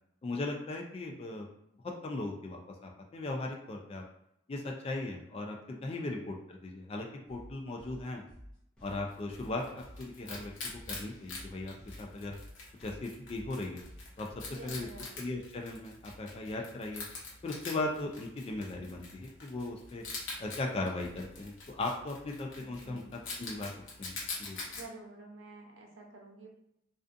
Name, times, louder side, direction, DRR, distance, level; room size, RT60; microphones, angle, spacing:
voice 1, 0.2-1.5 2.0-4.0 4.5-5.6 5.8-8.2 8.8-12.4 12.8-13.8 14.2-14.3 14.6-14.9 15.2-17.0 17.4-20.0 20.4-23.7 24.0-24.6, left 2 dB, 30° left, 1 dB, 0.3 m, -38 dB
voice 2, 5.7-6.3 14.5-15.2 22.6-23.1 24.6-26.5, right 3 dB, 90° right, 0 dB, 0.6 m, -50 dB
sound 1, 7.3-15.3, equal, 5° left, 0.7 m, -52 dB
Wild animals, 8.9-24.8, left 3 dB, 85° left, 0.8 m, -45 dB
2.4 x 2.4 x 2.5 m, 0.80 s
head